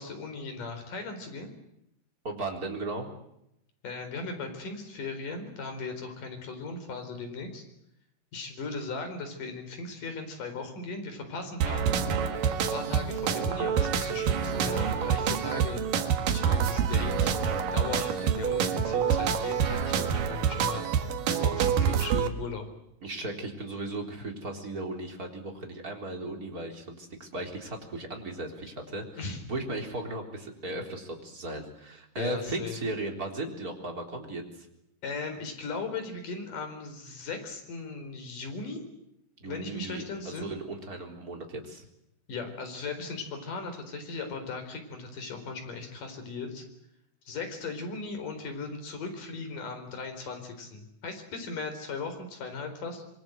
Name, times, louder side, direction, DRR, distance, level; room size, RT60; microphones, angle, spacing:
voice 1, 0.0-1.5 3.8-7.6 8.3-12.1 12.7-15.8 16.3-17.4 17.7-22.7 29.2-29.4 32.2-32.8 35.0-38.8 39.4-40.5 42.3-46.6 47.3-53.0, left 4 dB, 70° left, 6 dB, 5.9 m, -38 dB
voice 2, 2.2-3.1 23.0-34.7 39.4-41.9, right 2 dB, 25° right, 2 dB, 4.1 m, -36 dB
sound 1, 11.6-22.3, right 7 dB, 80° right, 3.3 m, -27 dB
26.0 x 23.5 x 8.0 m, 0.82 s
omnidirectional pair, 3.8 m